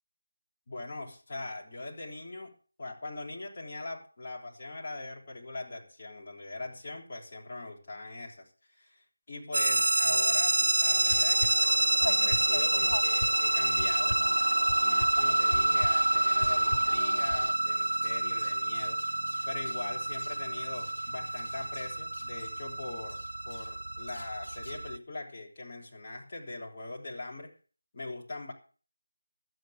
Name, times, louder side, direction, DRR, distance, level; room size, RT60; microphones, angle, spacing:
voice 1, 0.7-2.5 2.8-8.5 8.8-14.2 14.8-19.0 19.4-27.5 27.9-28.5, left 2 dB, 35° left, 0 dB, 3.3 m, -41 dB
sound 1, 9.5-25.0, right 2 dB, 65° right, 0.6 m, -28 dB
sound 2, 11.0-17.5, left 1 dB, 75° left, 0.8 m, -37 dB
sound 3, 15.9-16.7 16.9-22.6 23.1-23.8 24.1-24.8, left 1 dB, 55° left, 4.1 m, -53 dB
12.5 x 8.9 x 6.4 m, 0.38 s
figure-of-eight pair, 165°, 0 cm